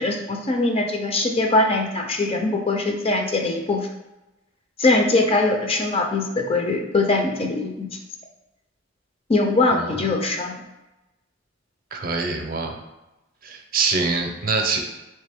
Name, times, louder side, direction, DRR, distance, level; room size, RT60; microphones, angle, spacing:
voice 1, 0.0-3.9 4.8-7.9 9.3-10.6, left 2 dB, 30° left, 3 dB, 0.4 m, -22 dB
voice 2, 9.7-10.0 11.9-12.8 13.4-14.8, right 4 dB, 50° right, 3 dB, 0.5 m, -24 dB
3.4 x 3.2 x 3.4 m, 1.0 s
head